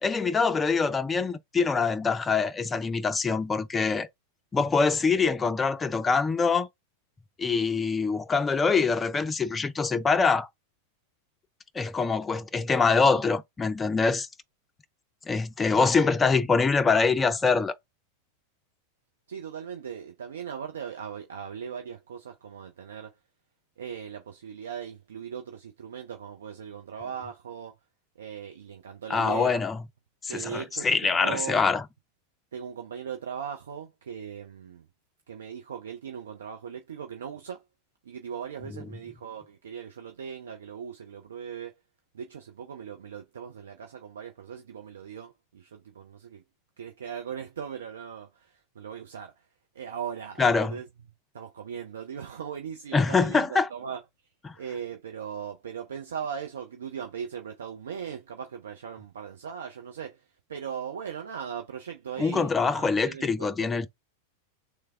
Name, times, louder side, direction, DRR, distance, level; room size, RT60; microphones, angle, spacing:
voice 1, 0.0-4.1 4.5-6.7 7.4-10.5 11.7-14.3 15.3-17.7 29.1-29.8 30.2-31.8 50.4-50.8 52.9-53.7 54.4-54.5 62.2-63.9, left 4 dB, 15° left, 0.5 m, -24 dB
voice 2, 19.3-23.1 23.8-27.7 28.2-29.6 30.3-31.6 32.5-34.9 35.3-37.6 38.0-41.7 42.1-46.4 46.8-49.4 49.7-50.9 51.3-54.0 54.5-63.7, right 7 dB, 65° right, 0.6 m, -39 dB
3.3 x 3.2 x 3.4 m
figure-of-eight pair, 90°, 0 cm